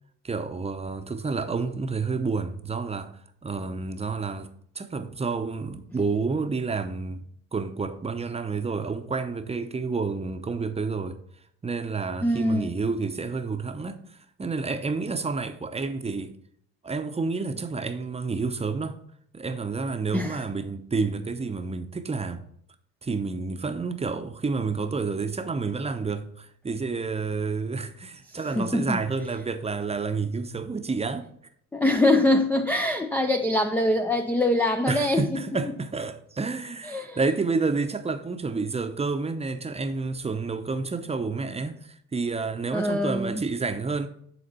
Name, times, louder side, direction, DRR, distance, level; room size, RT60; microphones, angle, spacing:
voice 1, 0.2-3.1 3.4-4.5 4.7-11.2 11.6-16.3 16.8-19.0 19.3-22.4 23.0-31.3 34.9-44.1, right 4 dB, 15° right, 0.7 m, -29 dB
voice 2, 12.2-12.7 20.1-20.4 28.3-29.0 31.7-35.2 36.9-37.2 42.7-43.4, left 1 dB, 5° left, 0.3 m, -24 dB
10.0 x 4.2 x 4.2 m
hypercardioid pair, 60°, 44 cm